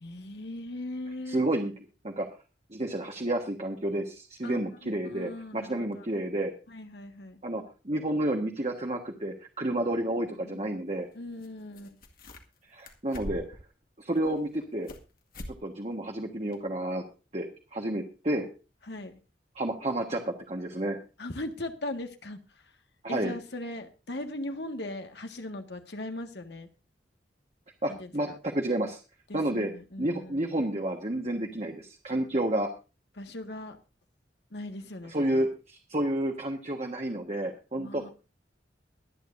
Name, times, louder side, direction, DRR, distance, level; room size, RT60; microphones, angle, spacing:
voice 1, 0.0-1.4 4.4-6.1 6.7-7.4 10.1-10.7 11.2-12.0 18.8-19.2 21.2-22.7 23.1-26.7 27.9-28.4 29.3-30.4 33.2-33.8 34.5-35.5 37.8-38.1, left 1 dB, 75° left, 5 dB, 1.7 m, -39 dB
voice 2, 1.3-1.7 2.0-2.3 2.7-6.5 7.4-11.1 12.7-13.4 14.0-14.9 15.5-17.0 17.3-17.5 17.7-18.4 19.5-21.0 23.0-23.3 27.8-29.0 29.3-29.7 30.0-32.7 35.1-38.1, right 1 dB, 35° right, 2 dB, 1.5 m, -30 dB
sound 1, 11.4-11.5 11.7-12.6 12.8-13.7 14.1-15.0 15.3-15.6 15.9-16.0 16.5-16.6, equal, 55° left, 1.9 m, -42 dB
23.0 x 9.1 x 2.6 m, 0.31 s
head